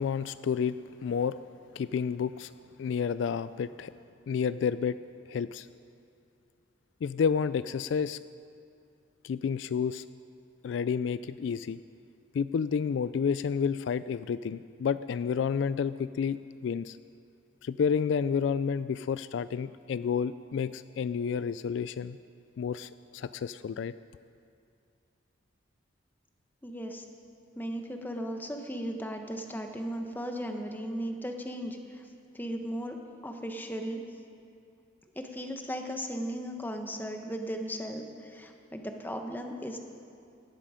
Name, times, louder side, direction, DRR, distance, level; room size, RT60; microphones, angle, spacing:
voice 1, 0.0-1.4 1.8-2.5 2.8-3.9 4.3-5.0 5.3-5.7 7.0-8.2 9.2-10.0 10.6-11.8 12.3-17.0 17.6-22.2 22.6-23.9, left 6 dB, 70° left, 15 dB, 0.3 m, -30 dB
voice 2, 26.6-27.0 27.5-32.0 32.3-34.0 35.1-39.8, equal, 10° left, 4 dB, 1.1 m, -36 dB
18.0 x 13.0 x 5.0 m, 2.4 s
head